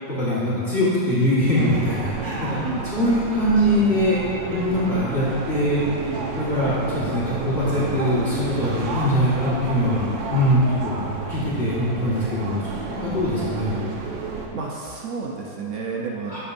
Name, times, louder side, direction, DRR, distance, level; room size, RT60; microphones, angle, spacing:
voice 1, 0.1-2.6 2.8-4.2 4.5-5.8 6.4-11.0 11.3-13.8 16.3-16.4, equal, 35° left, -11 dB, 2.0 m, -22 dB
sound 1, 1.6-14.5, right 4 dB, 80° right, 1.5 m, -31 dB
voice 2, 2.6-2.9 14.5-16.4, right 4 dB, 60° right, -2 dB, 0.8 m, -31 dB
10.5 x 7.0 x 2.7 m, 3.0 s
omnidirectional pair, 2.1 m